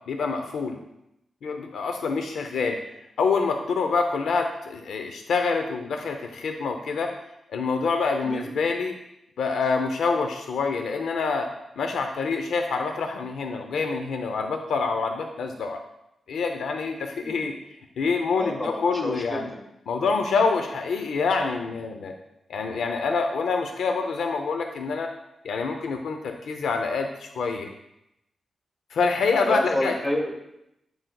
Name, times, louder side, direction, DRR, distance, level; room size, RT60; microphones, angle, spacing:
voice 1, 0.1-0.8 1.4-2.8 3.2-7.1 7.5-8.9 9.4-11.5 11.8-15.8 16.3-17.5 18.0-19.5 19.9-22.1 22.5-25.1 25.4-27.7 28.9-29.9, left 4 dB, 90° left, 5 dB, 0.6 m, -26 dB
voice 2, 17.2-17.5 18.4-19.6 20.0-20.1 29.4-30.3, left 1 dB, 20° left, 0 dB, 1.4 m, -29 dB
7.8 x 7.8 x 2.3 m, 0.84 s
wide cardioid pair, 140°, 0 cm